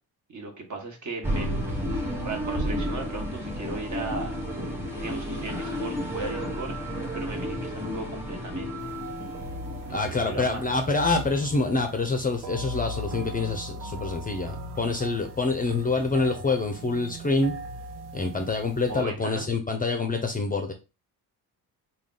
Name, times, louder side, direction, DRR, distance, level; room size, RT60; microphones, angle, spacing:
voice 1, 0.3-1.6 2.2-4.4 5.0-6.7 7.1-8.8 9.8-10.7 18.9-19.5, right 3 dB, 45° right, 1.2 m, -37 dB
sound 1, 1.2-10.4, equal, 5° right, 1.1 m, -32 dB
sound 2, 8.8-19.0, right 1 dB, 80° right, 0.7 m, -39 dB
voice 2, 9.9-17.5 18.1-20.7, left 3 dB, 20° left, 0.5 m, -26 dB
3.4 x 2.3 x 3.7 m
cardioid pair, 110°, 40 cm